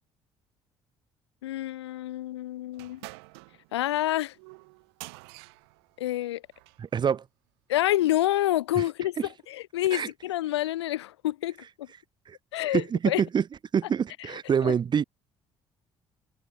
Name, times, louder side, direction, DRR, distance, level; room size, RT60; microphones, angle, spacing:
voice 1, 1.4-3.0 3.7-4.3 6.0-6.4 7.7-9.2 9.5-11.9 12.5-13.2 14.6-14.7, left 14 dB, 75° left, 0.5 m, -28 dB
sound 1, 2.7-6.9, right 30 dB, 70° right, 5.4 m, -48 dB
voice 2, 6.8-7.2 8.8-8.9 9.2-9.3 9.9-10.1 12.3-12.4 12.7-13.4 13.7-15.0, right 7 dB, 30° right, 0.6 m, -26 dB
figure-of-eight pair, 50°, 14 cm